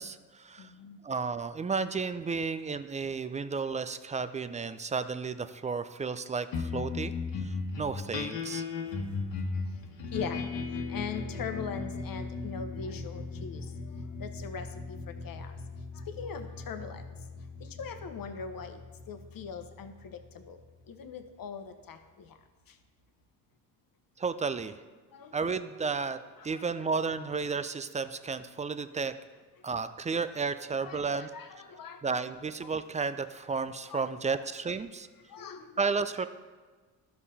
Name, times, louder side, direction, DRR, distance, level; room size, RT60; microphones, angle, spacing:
voice 1, 0.0-0.7 1.0-7.1 7.4-8.6 24.2-24.8 25.3-29.2 29.6-31.3 32.0-35.1 35.8-36.3, right 5 dB, 15° right, 12 dB, 0.4 m, -33 dB
voice 2, 0.6-1.0 10.1-10.5 10.9-13.7 14.2-15.0 15.2-15.5 16.1-17.0 17.8-18.8 19.1-20.2 20.5-20.6 20.9-22.0 25.1-25.3 26.4-26.6 30.8-31.0 31.3-32.0 32.6-32.7 33.9-34.0 35.3-35.7, left 6 dB, 45° left, 8 dB, 1.1 m, -40 dB
sound 1, 6.5-21.2, left 4 dB, 65° left, 1.4 m, -37 dB
12.5 x 5.5 x 4.1 m, 1.4 s
hypercardioid pair, 60°, 48 cm